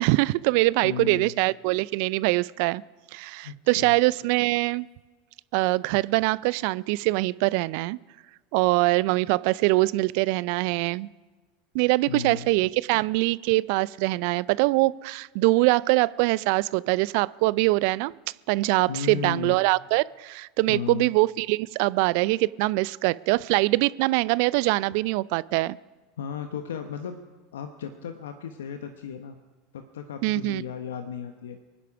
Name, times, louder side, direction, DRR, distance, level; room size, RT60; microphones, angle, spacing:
voice 1, 0.0-2.8 3.1-4.9 5.5-8.0 8.5-11.1 11.7-18.1 18.5-25.8 30.2-30.6, right 22 dB, 60° right, 21 dB, 0.4 m, -23 dB
voice 2, 0.8-1.3 3.4-4.0 12.1-12.5 18.9-19.6 20.7-21.1 26.2-27.2 27.5-29.4 29.7-31.6, left 7 dB, 75° left, 7 dB, 1.0 m, -35 dB
23.5 x 10.0 x 5.9 m, 1.3 s
hypercardioid pair, 85°, 0 cm